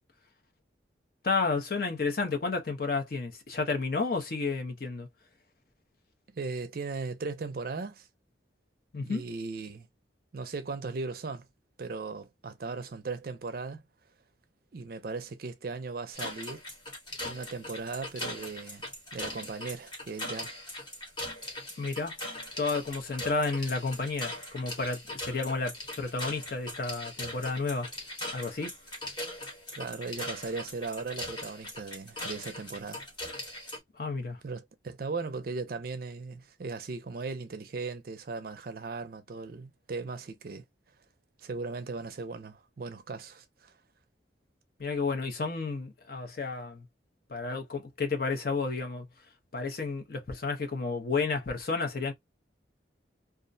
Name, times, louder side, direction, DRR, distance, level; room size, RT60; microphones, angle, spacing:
voice 1, 1.2-5.1 8.9-9.2 21.8-22.2 22.6-27.9 28.3-28.7 34.0-34.4 44.8-46.8 47.3-49.1 49.5-52.1, left 4 dB, 50° left, 0.6 m, -31 dB
voice 2, 6.3-8.1 9.0-9.9 10.3-11.5 11.8-13.8 14.7-16.6 17.2-18.9 19.1-20.6 29.8-33.1 34.4-40.6 41.4-43.7, right 4 dB, 50° right, 0.4 m, -37 dB
sound 1, 16.1-33.8, left 1 dB, 25° left, 0.9 m, -40 dB
2.4 x 2.1 x 2.5 m
head